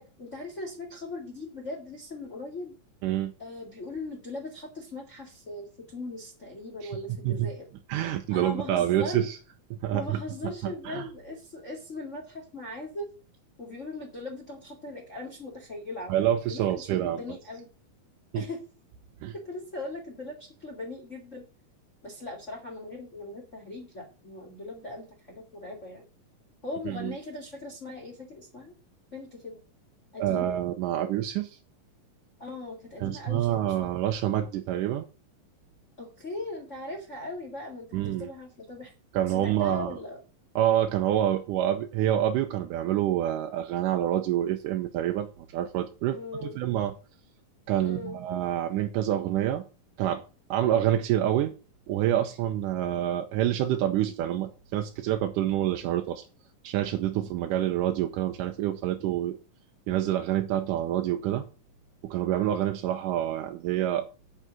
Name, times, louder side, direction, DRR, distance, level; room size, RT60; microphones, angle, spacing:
voice 1, 0.0-2.7 3.4-7.7 8.3-9.3 9.9-13.1 13.6-17.7 18.3-18.6 19.3-21.4 22.0-26.0 26.6-28.7 29.1-29.6 30.1-30.6 32.4-33.8 36.0-38.9 39.3-40.2 46.1-46.6 47.8-48.2, left 2 dB, 25° left, 1 dB, 1.7 m, -39 dB
voice 2, 7.9-9.4 9.7-11.1 16.1-17.2 18.3-18.4 19.2-19.3 26.9-27.1 30.2-31.6 33.0-35.0 37.9-38.3 39.1-40.0 40.6-46.9 47.7-49.6 50.0-50.2 50.5-51.6 51.9-56.2 56.6-59.4 59.9-61.5 62.0-64.1, right 12 dB, 75° right, 5 dB, 2.1 m, -27 dB
9.3 x 4.9 x 7.6 m, 0.34 s
omnidirectional pair, 4.1 m